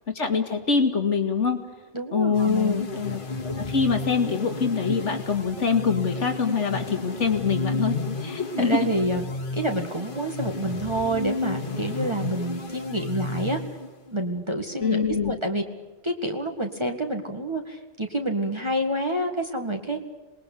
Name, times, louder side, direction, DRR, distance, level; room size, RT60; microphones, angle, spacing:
voice 1, 0.1-1.6 2.1-8.9 14.8-15.4, left 5 dB, 85° left, 5 dB, 2.6 m, -24 dB
voice 2, 1.9-2.8 8.6-9.2 9.5-13.6 14.1-15.6 16.0-20.0, right 1 dB, 25° right, 3 dB, 2.0 m, -28 dB
sound 1, 2.3-14.1, left 3 dB, 45° left, 2.1 m, -32 dB
27.0 x 20.5 x 8.5 m, 1.2 s
omnidirectional pair, 1.2 m